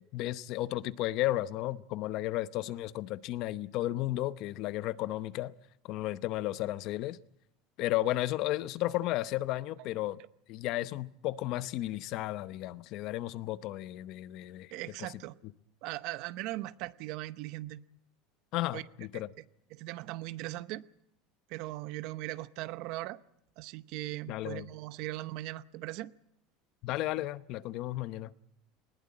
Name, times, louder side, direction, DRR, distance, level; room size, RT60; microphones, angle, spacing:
voice 1, 0.0-5.5 5.8-7.2 7.8-10.2 10.5-14.7 15.0-15.1 18.5-19.3 24.3-24.7 26.8-28.3, left 15 dB, 50° left, 0.8 m, -33 dB
voice 2, 14.7-15.3 15.8-17.8 18.7-18.8 19.1-19.2 19.7-20.8 21.5-23.2 23.6-26.1, right 17 dB, 60° right, 0.8 m, -39 dB
20.0 x 19.0 x 8.6 m
supercardioid pair, 150°, 0 cm